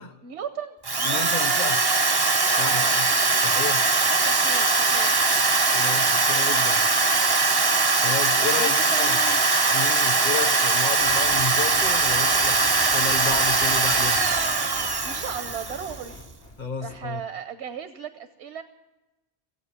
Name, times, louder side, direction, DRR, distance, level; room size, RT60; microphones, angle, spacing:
voice 1, 0.2-1.4 2.7-3.0 4.3-5.2 8.4-9.4 15.0-16.2 16.8-18.6, right 7 dB, 80° right, 9 dB, 1.1 m, -36 dB
Drill, 0.8-16.0, right 3 dB, 30° right, 0.5 m, -21 dB
voice 2, 1.0-1.9 2.4-3.1 3.4-3.9 5.7-6.8 8.0-9.2 9.7-14.2 16.6-17.2, left 5 dB, 45° left, 7 dB, 1.1 m, -32 dB
sound 1, 11.0-17.0, left 1 dB, 85° left, 1.9 m, -43 dB
16.5 x 8.5 x 9.8 m, 1.1 s
omnidirectional pair, 1.1 m